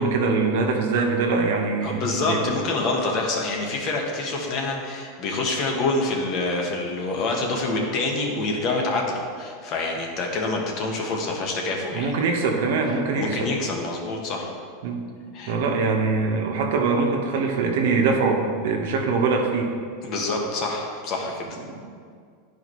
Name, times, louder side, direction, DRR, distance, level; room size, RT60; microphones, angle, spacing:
voice 1, 0.0-2.4 11.8-13.5 14.8-15.0 15.5-19.7 21.6-21.8, right 4 dB, 70° right, 1 dB, 1.2 m, -23 dB
voice 2, 1.8-12.1 13.1-14.5 15.3-15.6 20.0-21.6, left 2 dB, 45° left, 0 dB, 1.4 m, -26 dB
10.5 x 4.9 x 3.2 m, 2.1 s
supercardioid pair, 125°, 0 cm